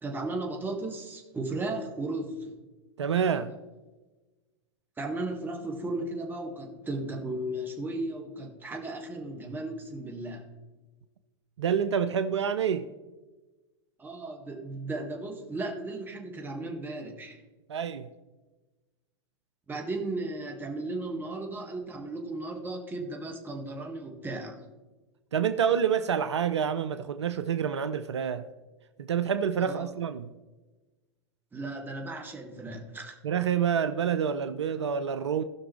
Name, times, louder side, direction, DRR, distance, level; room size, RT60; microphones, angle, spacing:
voice 1, 0.0-2.5 5.0-10.4 14.0-17.4 19.7-24.6 29.6-29.9 31.5-33.2, right 2 dB, 15° right, 1.9 m, -35 dB
voice 2, 3.0-3.5 11.6-12.9 17.7-18.1 25.3-28.4 29.0-30.3 33.2-35.4, right 7 dB, 75° right, 0.6 m, -27 dB
17.5 x 6.0 x 3.2 m
figure-of-eight pair, 95°, 15 cm